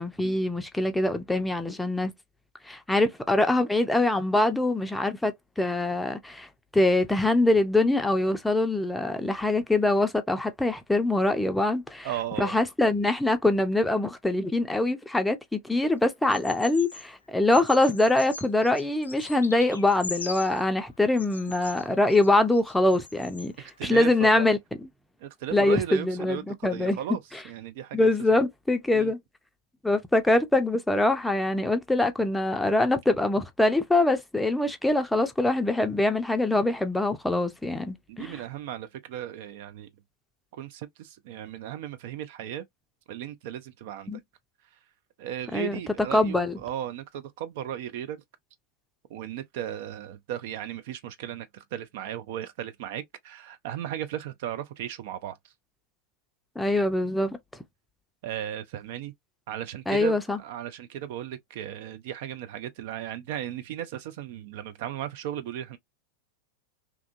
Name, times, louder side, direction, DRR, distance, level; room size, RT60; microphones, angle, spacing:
voice 1, 0.0-2.1 2.6-6.5 6.7-12.1 12.4-23.5 23.8-24.6 25.5-27.0 27.9-29.2 29.8-38.4 44.1-44.2 45.5-45.7 46.1-46.6 56.6-57.4 59.9-60.4, left 2 dB, 5° left, 0.5 m, -24 dB
voice 2, 12.0-12.6 23.6-24.5 25.2-27.2 27.4-28.4 28.9-29.1 38.1-39.9 40.5-42.7 43.1-44.1 45.2-48.2 49.1-55.5 58.2-59.1 59.5-65.8, right 11 dB, 50° right, 0.4 m, -36 dB
Bird vocalization bird call bird song, 16.3-17.1 17.5-20.7 21.1-23.5 23.8-23.9, left 4 dB, 75° left, 0.4 m, -42 dB
2.7 x 2.3 x 2.5 m
figure-of-eight pair, 90°, 0 cm